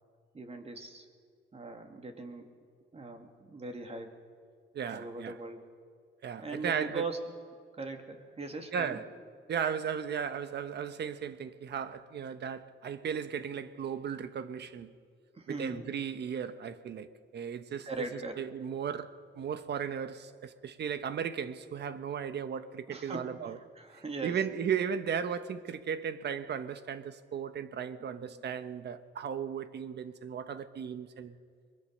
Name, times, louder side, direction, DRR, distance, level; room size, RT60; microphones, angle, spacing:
voice 1, 0.3-1.1 1.5-2.5 2.9-4.1 4.9-5.6 6.4-7.2 7.7-9.0 15.3-15.8 17.8-18.4 22.9-23.4 23.7-24.4 28.0-28.1, right 3 dB, 30° right, 2.8 m, -40 dB
voice 2, 4.7-5.3 6.2-7.0 8.7-9.0 9.5-14.9 15.5-23.6 24.2-31.4, right 7 dB, 60° right, 1.2 m, -36 dB
22.5 x 21.5 x 6.7 m
cardioid pair, 90°, 20 cm